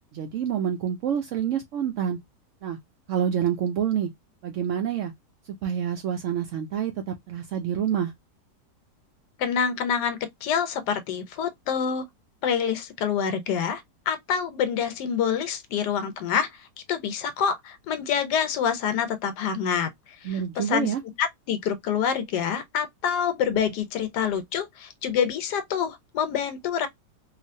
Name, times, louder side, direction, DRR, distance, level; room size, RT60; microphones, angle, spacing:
voice 1, 0.1-2.2 2.6-2.8 3.1-4.1 4.4-5.1 5.5-8.1 20.2-21.0, right 9 dB, 90° right, 0.6 m, -27 dB
voice 2, 9.4-12.1 12.4-16.5 16.9-19.9 20.2-20.9 21.2-26.9, left 7 dB, 75° left, 1.2 m, -27 dB
2.9 x 2.4 x 2.6 m
omnidirectional pair, 1.9 m